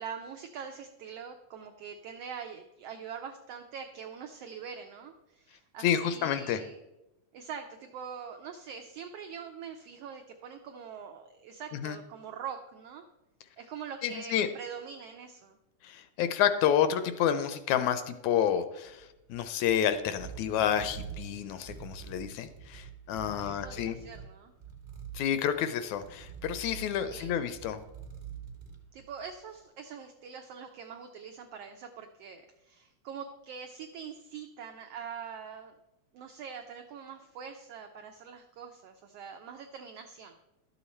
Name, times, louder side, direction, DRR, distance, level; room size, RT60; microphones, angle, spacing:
voice 1, 0.0-6.8 7.3-13.0 13.6-15.6 23.4-24.5 27.1-27.3 28.9-35.8 36.1-40.3, right 7 dB, 85° right, 5 dB, 1.4 m, -44 dB
voice 2, 5.8-6.6 11.7-12.0 14.0-14.5 15.8-24.0 25.1-27.8, left 9 dB, 80° left, 11 dB, 1.8 m, -29 dB
sound 1, 18.9-29.4, right 7 dB, 45° right, 1.1 m, -46 dB
12.0 x 7.1 x 4.2 m, 0.96 s
omnidirectional pair, 3.5 m